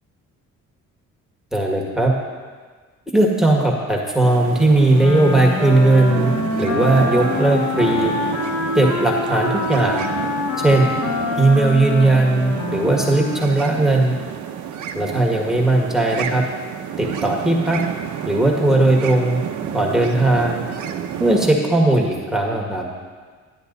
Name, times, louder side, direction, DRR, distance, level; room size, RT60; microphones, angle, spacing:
voice 1, 1.5-2.1 3.1-6.3 6.6-8.1 8.8-10.1 10.6-10.9 11.4-14.2 14.9-16.4 17.0-17.8 18.3-19.4 19.7-20.6 21.2-22.9, right 2 dB, ahead, -1 dB, 1.9 m, -17 dB
sound 1, 4.2-21.5, right 8 dB, 75° right, 0.9 m, -30 dB
Wind instrument woodwind instrument, 4.9-13.6, left 3 dB, 75° left, 1.5 m, -25 dB
11.0 x 10.0 x 4.1 m, 1.5 s
cardioid pair, 90°, 30 cm